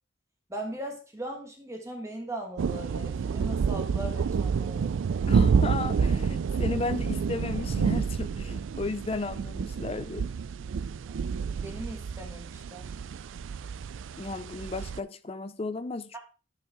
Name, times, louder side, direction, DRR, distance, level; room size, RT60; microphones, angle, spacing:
voice 1, 0.5-4.9 11.6-12.9, right 1 dB, 15° right, 1.5 m, -39 dB
sound 1, 2.6-15.0, right 6 dB, 90° right, 0.4 m, -29 dB
voice 2, 5.3-10.3 14.2-16.2, left 3 dB, 30° left, 0.5 m, -34 dB
12.0 x 5.6 x 3.6 m
head